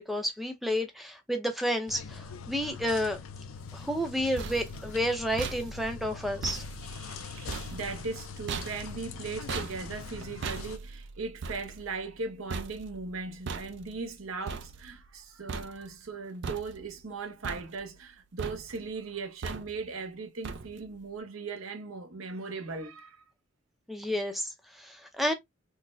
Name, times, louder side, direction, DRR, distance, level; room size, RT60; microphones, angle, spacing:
voice 1, 0.0-3.2 3.7-6.6 23.9-25.3, equal, ahead, 0.6 m, -31 dB
sound 1, 1.9-10.8, left 5 dB, 90° left, 0.4 m, -43 dB
sound 2, 4.0-15.2 15.5-16.1 16.4-17.1 17.4-18.1 18.4-18.9 19.4-20.0 20.4-21.0, right 5 dB, 60° right, 0.4 m, -40 dB
voice 2, 6.9-23.2, right 4 dB, 90° right, 0.8 m, -38 dB
3.9 x 2.1 x 2.5 m
head